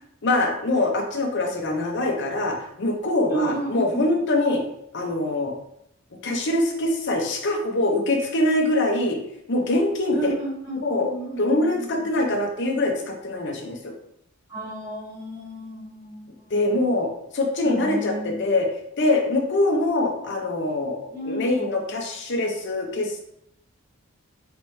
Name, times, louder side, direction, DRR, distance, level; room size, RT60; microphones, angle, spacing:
voice 1, 0.2-4.6 4.9-5.5 6.2-9.2 9.5-10.3 10.8-11.1 11.4-13.9 16.5-17.1 17.3-18.7 19.0-23.2, left 2 dB, 55° left, 2 dB, 0.7 m, -23 dB
voice 2, 3.3-4.1 10.1-12.1 14.5-16.3 17.6-18.4 21.1-21.7, right 2 dB, 15° right, -11 dB, 1.1 m, -32 dB
4.3 x 3.3 x 3.1 m, 0.77 s
head